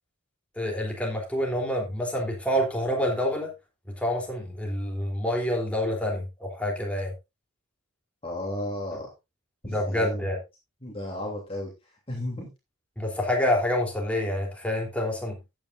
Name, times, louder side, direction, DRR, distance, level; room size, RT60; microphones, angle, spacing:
voice 1, 0.5-3.5 4.0-7.1 9.7-10.4 13.0-15.4, left 1 dB, 5° left, 0 dB, 3.3 m, -27 dB
voice 2, 8.2-9.1 9.6-10.3 10.8-12.5, left 1 dB, 25° left, -1 dB, 3.0 m, -34 dB
14.5 x 9.1 x 2.6 m, 0.23 s
head